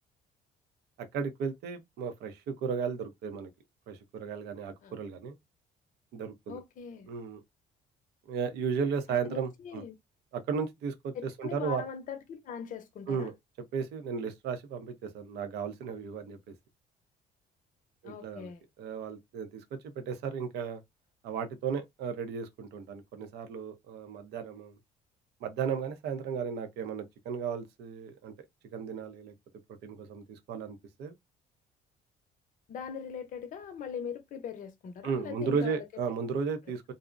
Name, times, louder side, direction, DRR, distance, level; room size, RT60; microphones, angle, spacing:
voice 1, 1.1-3.5 3.9-5.3 6.1-6.6 7.1-7.4 8.3-9.8 10.3-11.9 13.1-13.3 13.7-16.5 18.0-18.5 18.8-20.8 21.2-24.8 25.4-28.3 28.7-29.3 29.8-31.1 35.0-36.8, right 6 dB, 75° right, 0.6 m, -35 dB
voice 2, 6.5-7.1 9.3-9.9 11.1-13.3 18.0-18.6 32.7-35.9, left 7 dB, 50° left, 0.6 m, -41 dB
2.5 x 2.0 x 2.4 m
cardioid pair, 110°, 17 cm